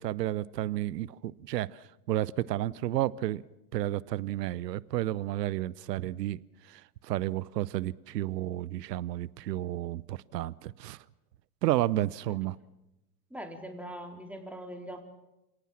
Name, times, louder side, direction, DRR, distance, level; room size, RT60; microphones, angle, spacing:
voice 1, 0.0-3.4 3.7-11.0 11.6-12.6, right 14 dB, 85° right, 22 dB, 0.8 m, -32 dB
voice 2, 13.3-15.0, right 1 dB, 5° right, 3 dB, 4.2 m, -42 dB
28.0 x 18.0 x 7.4 m, 0.94 s
hypercardioid pair, 95°, 47 cm